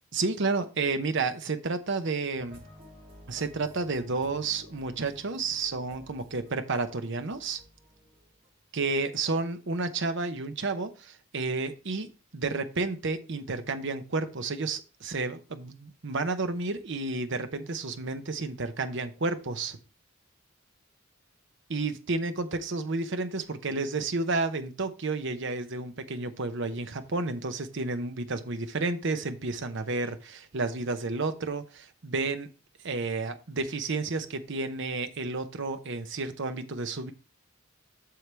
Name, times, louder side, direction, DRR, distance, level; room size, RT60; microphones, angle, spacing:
voice 1, 0.1-2.6 3.3-7.6 8.7-19.8 21.7-32.5 32.8-37.1, right 3 dB, 60° right, 0.9 m, -31 dB
sound 1, 2.3-8.7, equal, 30° right, 2.0 m, -53 dB
7.7 x 6.6 x 3.4 m
head